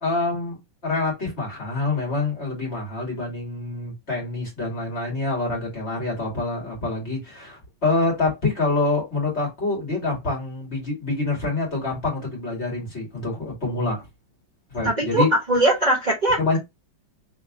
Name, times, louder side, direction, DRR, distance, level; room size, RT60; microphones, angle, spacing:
voice 1, 0.0-14.0 14.7-15.3 16.4-16.6, left 3 dB, 35° left, 2.1 m, -26 dB
voice 2, 14.8-16.6, right 1 dB, 25° right, 1.1 m, -21 dB
3.5 x 3.0 x 3.5 m
omnidirectional pair, 2.1 m